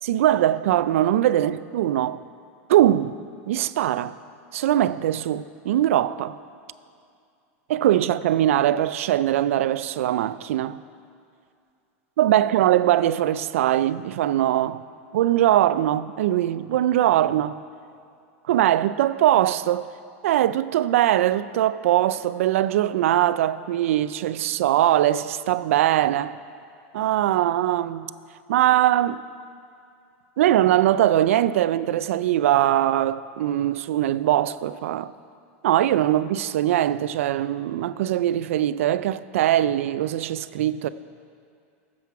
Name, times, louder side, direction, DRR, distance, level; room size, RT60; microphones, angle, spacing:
voice 1, 0.0-2.2 2.7-3.1 3.5-4.2 4.5-6.4 7.7-10.8 12.2-14.8 15.1-17.6 18.5-19.9 20.2-26.4 26.9-28.1 28.5-29.2 30.4-35.1 35.6-40.9, right 12 dB, 85° right, 0.4 m, -21 dB
16.0 x 7.5 x 4.7 m
supercardioid pair, 145°, 7 cm